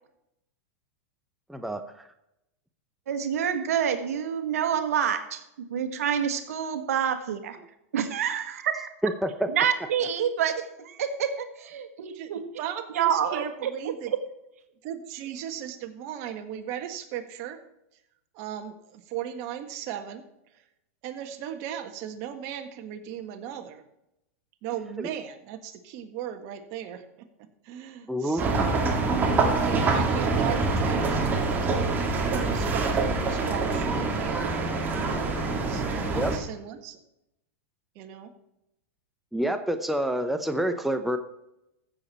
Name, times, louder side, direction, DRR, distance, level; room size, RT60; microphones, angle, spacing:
voice 1, 1.5-2.0 9.0-9.5 28.1-28.4 36.1-36.3 39.3-41.2, right 1 dB, ahead, 7 dB, 0.7 m, -27 dB
voice 2, 3.1-5.4 5.7-7.6 7.9-8.9 9.5-12.4 12.9-13.7, right 8 dB, 80° right, 8 dB, 1.5 m, -27 dB
voice 3, 12.6-14.1 14.8-17.6 18.3-20.2 21.0-23.8 24.6-27.3 27.6-28.6 29.4-31.9 32.5-35.1 35.6-37.0 37.9-38.3, right 10 dB, 50° right, 6 dB, 1.6 m, -37 dB
sound 1, 28.4-36.4, right 3 dB, 20° right, 2.2 m, -25 dB
15.0 x 7.2 x 4.3 m, 0.86 s
hypercardioid pair, 125°, 8 cm